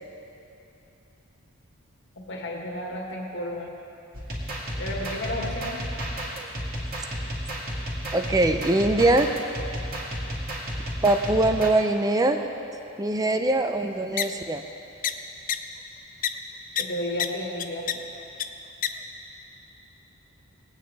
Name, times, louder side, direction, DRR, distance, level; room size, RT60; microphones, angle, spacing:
voice 1, 2.1-3.7 4.8-5.8 16.8-18.0, left 1 dB, 55° left, -1 dB, 1.7 m, -32 dB
sound 1, 4.1-11.7, equal, 40° right, 2.1 m, -32 dB
voice 2, 8.1-9.3 11.0-12.4 13.0-14.6, right 2 dB, 15° right, 7 dB, 0.5 m, -22 dB
sound 2, 14.2-14.3 15.0-15.1 15.5-15.6 16.2-16.3 16.8-16.9 17.2-17.3 17.6-17.9 18.4-18.5 18.8-18.9, left 10 dB, 40° left, 0.4 m, -25 dB
19.0 x 9.0 x 3.4 m, 2.8 s
head